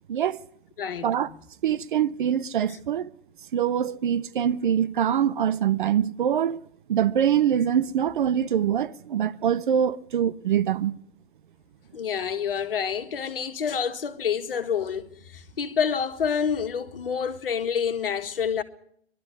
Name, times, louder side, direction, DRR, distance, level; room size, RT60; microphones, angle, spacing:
voice 1, 0.1-0.4 1.0-1.3 1.6-3.1 3.5-6.6 6.9-11.0, right 9 dB, 50° right, 0.8 m, -24 dB
voice 2, 0.8-1.4 11.9-18.6, left 7 dB, 60° left, 1.8 m, -28 dB
22.0 x 12.5 x 9.6 m
figure-of-eight pair, 115°, 32 cm